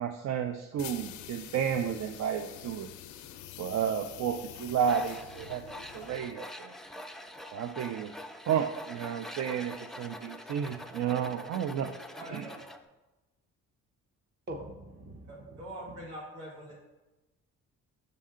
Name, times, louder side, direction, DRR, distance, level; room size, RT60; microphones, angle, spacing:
voice 1, 0.0-2.9 3.6-6.8 7.5-8.1 8.5-11.9 12.3-12.5, right 8 dB, 60° right, 7 dB, 0.5 m, -32 dB
sound 1, 0.8-6.4, left 12 dB, 75° left, 0.5 m, -46 dB
Tools, 4.9-12.8, left 1 dB, ahead, 0.3 m, -45 dB
voice 2, 12.1-12.6 15.3-16.7, right 1 dB, 90° right, -4 dB, 2.2 m, -44 dB
voice 3, 14.5-15.6, right 1 dB, 35° right, 4 dB, 0.8 m, -43 dB
5.4 x 5.4 x 3.7 m, 1.1 s
cardioid pair, 90°, 30 cm